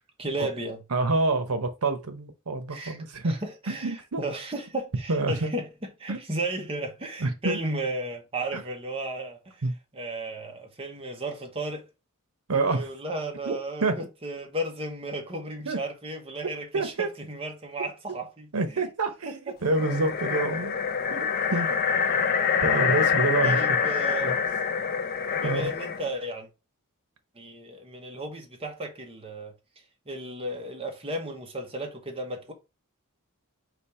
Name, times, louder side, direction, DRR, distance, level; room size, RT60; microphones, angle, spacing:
voice 1, 0.2-0.8 2.7-3.0 3.2-5.7 6.0-9.6 9.9-11.8 12.5-18.8 22.4-22.6 23.4-24.4 25.0-26.5 27.4-29.5 30.1-32.5, right 1 dB, 25° right, 1.0 m, -34 dB
voice 2, 0.9-3.4 3.7-4.2 5.1-5.5 6.1-6.2 7.2-7.6 8.5-8.6 9.6-9.7 12.5-12.9 13.4-14.0 15.7-15.8 16.4-17.1 18.5-20.7 21.1-21.7 22.6-23.6 24.2-24.4 25.4-25.7, right 3 dB, 85° right, 0.9 m, -27 dB
sound 1, 19.6-26.1, left 6 dB, 45° left, 0.5 m, -26 dB
5.2 x 2.4 x 4.2 m
head